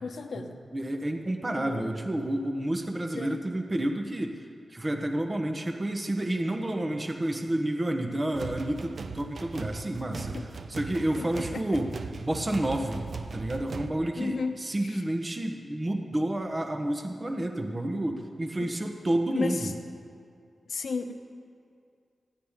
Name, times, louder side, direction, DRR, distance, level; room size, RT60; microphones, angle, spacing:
voice 1, 0.0-0.6 1.5-2.0 3.1-3.4 10.3-10.4 11.2-11.6 14.2-14.5 14.8-15.0 19.3-19.6 20.7-21.1, left 4 dB, 75° left, 6 dB, 1.1 m, -34 dB
voice 2, 0.7-4.4 4.7-19.7, right 1 dB, 25° right, 4 dB, 1.1 m, -30 dB
sound 1, 8.3-13.9, right 4 dB, 65° right, 0.8 m, -39 dB
19.0 x 15.0 x 3.7 m, 2.3 s
wide cardioid pair, 90°, 0 cm